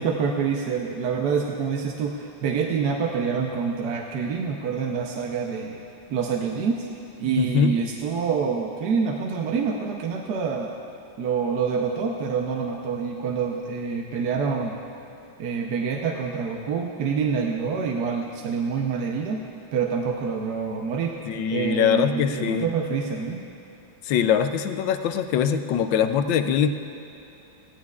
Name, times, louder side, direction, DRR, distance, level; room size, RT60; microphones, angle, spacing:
voice 1, 0.0-5.8 6.1-6.9 7.2-10.8 11.2-14.8 15.4-19.4 19.7-21.2 21.5-23.4, right 6 dB, 65° right, 1 dB, 1.2 m, -26 dB
voice 2, 7.4-7.7 21.2-22.7 24.0-26.7, left 8 dB, 75° left, 9 dB, 1.3 m, -22 dB
19.0 x 16.0 x 2.4 m, 2.9 s
omnidirectional pair, 2.2 m